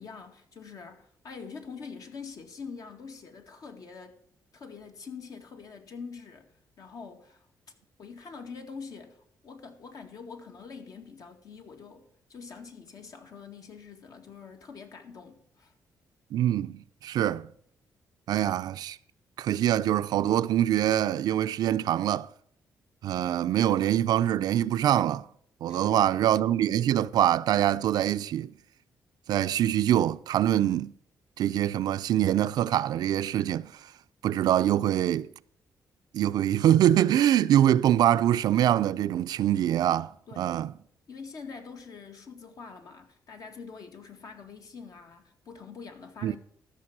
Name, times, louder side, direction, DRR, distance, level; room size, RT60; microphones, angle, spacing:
voice 1, 0.0-4.2 4.5-6.5 6.8-7.5 8.0-15.7 25.7-26.1 40.3-40.6 41.1-46.4, left 5 dB, 60° left, 1.9 m, -45 dB
voice 2, 16.3-17.5 18.3-19.0 19.4-22.3 23.0-25.3 25.6-28.5 29.3-30.9 31.4-33.7 34.2-35.3 36.1-40.7 46.2-46.4, right 11 dB, 75° right, 0.5 m, -24 dB
14.0 x 6.7 x 6.1 m
cardioid pair, 85°, 7 cm